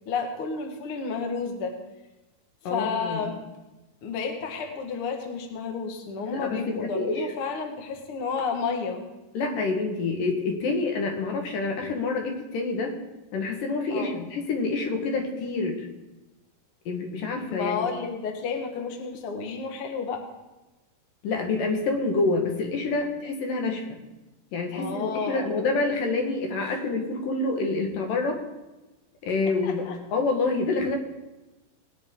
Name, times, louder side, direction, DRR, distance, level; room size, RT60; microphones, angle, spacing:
voice 1, 0.1-1.8 2.6-3.4 4.0-9.1 13.9-14.2 17.5-20.2 24.7-25.5 29.6-30.0, left 5 dB, 50° left, 4 dB, 1.9 m, -31 dB
voice 2, 2.6-3.3 6.3-7.3 9.3-13.0 13.3-15.9 16.9-17.8 21.2-24.0 24.5-28.4 29.2-31.0, left 3 dB, 75° left, 3 dB, 3.1 m, -27 dB
19.5 x 10.0 x 3.7 m, 1.1 s
omnidirectional pair, 4.0 m